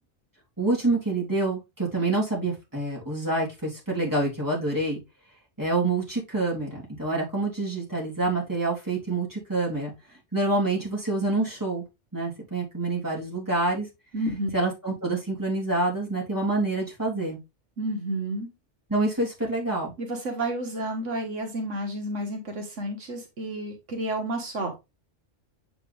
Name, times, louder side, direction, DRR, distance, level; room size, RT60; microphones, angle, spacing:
voice 1, 0.6-5.0 5.6-9.9 10.3-11.8 12.1-13.9 14.5-17.4 18.9-19.9, right 2 dB, 15° right, -4 dB, 3.6 m, -27 dB
voice 2, 14.1-14.5 17.8-18.5 20.0-24.7, right 1 dB, 85° right, 3 dB, 1.9 m, -31 dB
7.5 x 5.0 x 3.4 m, 0.23 s
omnidirectional pair, 1.2 m